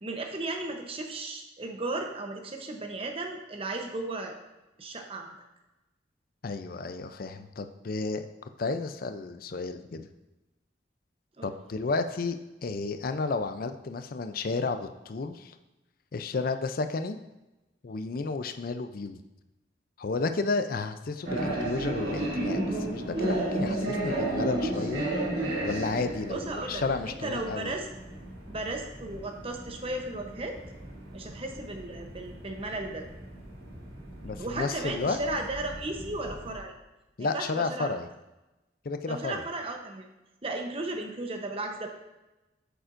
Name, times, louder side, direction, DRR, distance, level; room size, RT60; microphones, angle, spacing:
voice 1, 0.0-4.4 4.8-5.4 11.4-11.6 26.3-27.9 28.5-30.6 31.1-33.1 34.4-36.7 37.2-37.9 39.1-40.0 40.4-41.9, right 2 dB, 30° right, 4 dB, 0.8 m, -35 dB
voice 2, 6.4-8.3 8.6-10.1 11.4-15.5 16.1-17.2 17.8-19.2 20.0-25.1 25.6-27.7 34.2-35.2 37.2-38.1 38.8-39.4, left 3 dB, 50° left, 9 dB, 0.5 m, -32 dB
sound 1, 21.3-36.6, right 1 dB, 60° right, 2.1 m, -34 dB
8.7 x 6.9 x 2.6 m, 1.0 s
head